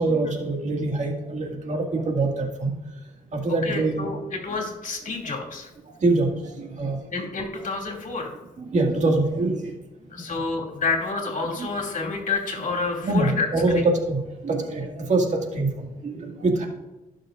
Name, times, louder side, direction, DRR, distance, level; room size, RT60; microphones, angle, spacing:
voice 1, 0.0-2.7 3.3-4.1 6.0-6.3 6.6-7.0 8.6-9.7 11.6-11.7 13.0-16.6, right 2 dB, 50° right, 1 dB, 2.0 m, -24 dB
voice 2, 3.6-5.7 7.1-8.3 10.1-13.5, left 4 dB, 60° left, 0 dB, 2.5 m, -29 dB
17.5 x 6.5 x 2.5 m, 1.1 s
cardioid pair, 95°, 15 cm